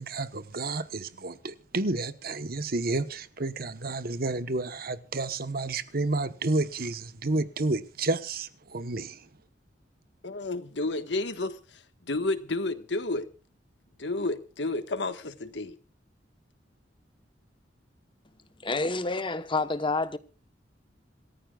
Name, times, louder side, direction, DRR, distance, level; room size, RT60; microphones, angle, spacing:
voice 1, 0.0-9.3, right 2 dB, 55° right, 1.2 m, -30 dB
voice 2, 10.2-11.6 12.1-13.3 14.0-15.8, left 2 dB, 75° left, 1.5 m, -31 dB
voice 3, 18.6-20.2, left 3 dB, 30° left, 1.1 m, -28 dB
27.0 x 14.5 x 2.4 m
head